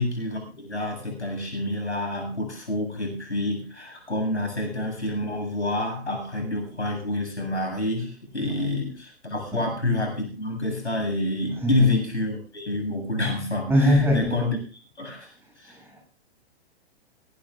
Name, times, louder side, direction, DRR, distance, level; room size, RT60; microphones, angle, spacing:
voice 1, 0.0-14.6 15.0-15.8, left 2 dB, 85° left, 3 dB, 7.6 m, -28 dB
voice 2, 11.5-12.0 13.7-14.3 15.6-16.0, equal, 5° right, 0 dB, 7.7 m, -23 dB
20.5 x 17.5 x 2.5 m, 0.36 s
figure-of-eight pair, 110°, 33 cm